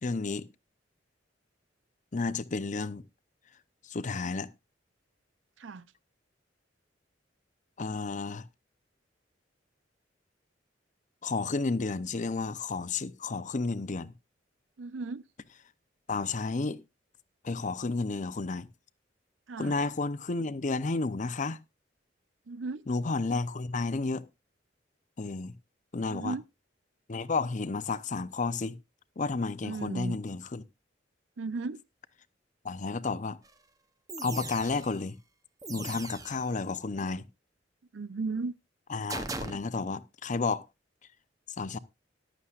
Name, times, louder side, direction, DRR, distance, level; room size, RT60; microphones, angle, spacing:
voice 1, 0.0-0.5 2.1-3.0 3.9-4.5 7.8-8.4 11.2-14.1 16.1-16.8 17.4-18.7 19.6-21.6 22.9-24.3 25.2-25.5 25.9-26.4 27.1-28.8 29.2-30.6 32.6-33.4 34.2-35.2 35.7-37.2 38.9-40.6 41.6-41.8, left 3 dB, 40° left, 0.6 m, -31 dB
voice 2, 14.8-15.2 19.5-19.7 22.5-22.8 26.1-26.4 29.6-30.2 31.4-31.8 37.9-38.5, right 3 dB, 90° right, 0.6 m, -35 dB
sound 1, 33.4-33.5 34.1-35.0 35.6-36.5 39.1-39.5, right 3 dB, 20° right, 0.8 m, -39 dB
14.5 x 11.5 x 2.4 m
head